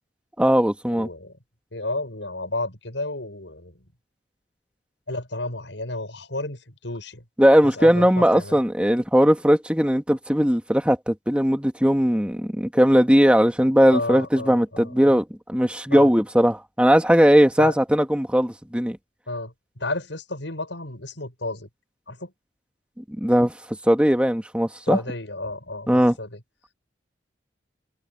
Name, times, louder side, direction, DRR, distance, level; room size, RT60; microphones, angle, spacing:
voice 1, 0.4-1.1 7.4-19.0 23.2-23.5 23.8-25.0 25.9-26.2, equal, 5° right, 1.9 m, -19 dB
voice 2, 0.9-1.3 1.7-3.7 5.1-7.2 7.6-8.6 13.9-15.2 15.9-16.1 17.6-17.7 19.3-19.5 19.8-21.7 22.1-22.3 24.9-26.4, left 2 dB, 80° left, 6.9 m, -32 dB
head